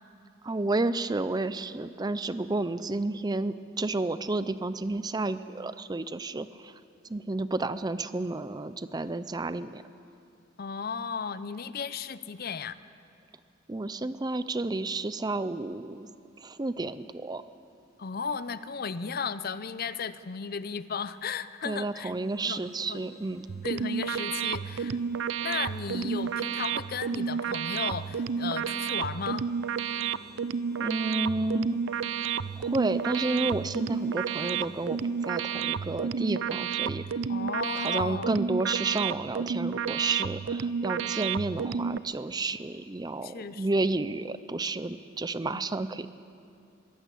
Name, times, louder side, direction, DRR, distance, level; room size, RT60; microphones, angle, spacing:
voice 1, 0.4-6.8 7.1-9.8 13.7-16.1 16.4-17.4 21.6-23.5 30.8-31.8 32.6-37.2 37.8-46.1, right 2 dB, 20° right, 14 dB, 0.5 m, -31 dB
voice 2, 10.6-12.8 18.0-22.1 22.4-22.6 22.9-23.0 23.6-25.0 25.4-29.4 37.3-38.4 41.0-41.1 43.2-43.7 45.5-45.9, left 5 dB, 50° left, 14 dB, 0.6 m, -35 dB
sound 1, 21.9-37.9, left 1 dB, 5° left, 1.8 m, -54 dB
sound 2, 23.5-42.0, right 7 dB, 80° right, 0.5 m, -31 dB
22.0 x 15.5 x 8.3 m, 2.5 s
head